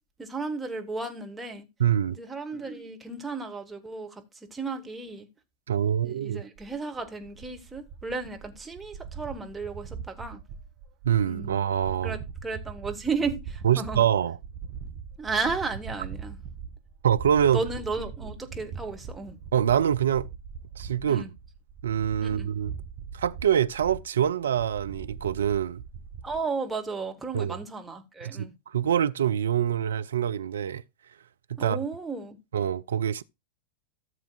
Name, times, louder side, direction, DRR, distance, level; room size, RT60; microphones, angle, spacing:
voice 1, 0.2-1.7 2.1-4.2 4.5-5.3 6.0-10.4 11.2-11.6 12.0-14.0 15.2-16.4 17.5-19.4 21.1-21.3 22.2-22.5 26.2-28.5 31.6-32.4, right 4 dB, 10° right, 1.5 m, -34 dB
voice 2, 1.8-2.2 5.7-6.4 11.0-12.2 13.6-14.4 17.0-17.6 19.5-20.3 20.8-21.2 21.8-22.7 23.1-25.8 27.3-27.6 28.2-30.8 31.5-31.8 32.5-33.2, right 9 dB, 65° right, 0.4 m, -25 dB
sound 1, 6.5-26.4, right 6 dB, 45° right, 1.0 m, -41 dB
14.0 x 7.1 x 2.4 m
figure-of-eight pair, 90°, 0 cm